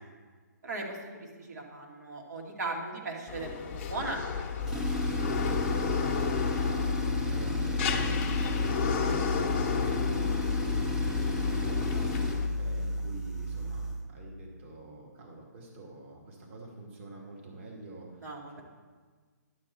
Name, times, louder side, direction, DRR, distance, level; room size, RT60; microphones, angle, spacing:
voice 1, 0.6-4.2 4.6-6.4 18.2-18.6, right 2 dB, 70° right, -1 dB, 2.3 m, -39 dB
sound 1, 3.3-12.5, left 6 dB, 40° left, 0.8 m, -34 dB
Tools, 4.6-14.1, left 2 dB, 5° right, 0.6 m, -30 dB
voice 2, 7.0-18.6, right 2 dB, 45° right, -1 dB, 1.8 m, -47 dB
11.5 x 7.0 x 4.2 m, 1.5 s
hypercardioid pair, 145°, 10 cm